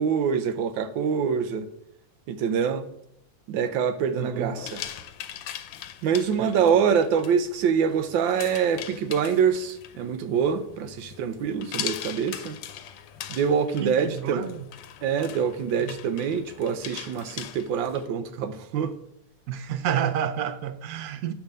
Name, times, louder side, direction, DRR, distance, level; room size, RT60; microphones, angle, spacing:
voice 1, 0.0-1.7 2.3-2.9 3.5-4.8 6.0-12.6 13.3-14.5 15.0-18.9, right 7 dB, 90° right, 1.5 m, -25 dB
voice 2, 4.1-4.5 6.4-6.8 13.8-14.7 15.7-16.0 19.5-21.3, right 9 dB, 65° right, 1.0 m, -30 dB
sound 1, 4.6-18.1, left 10 dB, 80° left, 1.3 m, -40 dB
10.0 x 3.5 x 6.5 m
omnidirectional pair, 2.0 m